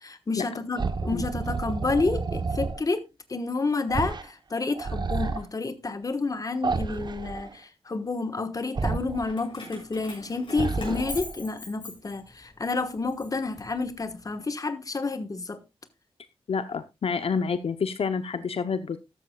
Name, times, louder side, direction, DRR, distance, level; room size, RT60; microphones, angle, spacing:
voice 1, 0.0-3.0 3.3-15.6, left 3 dB, 35° left, 1.3 m, -30 dB
sound 1, 0.8-2.8 3.9-4.3 4.6-5.4 6.6-7.5 8.7-9.3 10.5-11.4, right 4 dB, 45° right, 0.9 m, -30 dB
Keys jangling, 9.3-12.5 12.9-14.2, left 2 dB, 50° left, 7.1 m, -41 dB
voice 2, 16.5-19.0, left 5 dB, 70° left, 0.7 m, -28 dB
13.5 x 12.5 x 2.3 m
wide cardioid pair, 155°, 10 cm